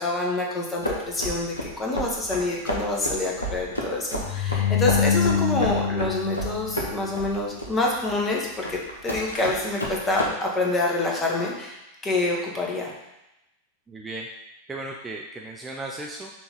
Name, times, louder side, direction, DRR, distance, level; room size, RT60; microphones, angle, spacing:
voice 1, 0.0-12.9, left 2 dB, 20° left, -1 dB, 1.4 m, -27 dB
sound 1, 0.8-10.3, equal, 80° left, 1.1 m, -32 dB
sound 2, 4.2-7.4, left 7 dB, 55° left, 0.8 m, -25 dB
voice 2, 13.9-14.3 14.7-16.3, right 2 dB, 15° right, -1 dB, 0.6 m, -35 dB
6.1 x 3.1 x 5.2 m, 0.93 s
figure-of-eight pair, 90°, 0 cm